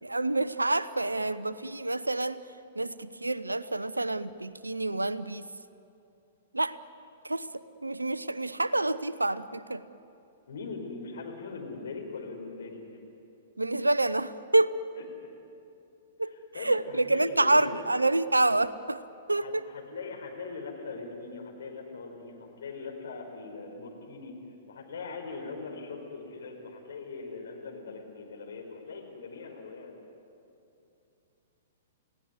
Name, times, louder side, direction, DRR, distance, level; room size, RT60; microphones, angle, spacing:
voice 1, 0.0-2.4 2.7-5.5 6.5-6.8 7.2-9.8 13.6-14.7 16.2-19.0 19.3-19.6, right 2 dB, 85° right, 16 dB, 0.8 m, -28 dB
voice 2, 10.5-12.8 16.3-17.7 19.4-24.3 24.7-29.9, left 4 dB, 65° left, 1 dB, 5.3 m, -41 dB
29.5 x 17.5 x 9.6 m, 2.7 s
figure-of-eight pair, 105°, 0 cm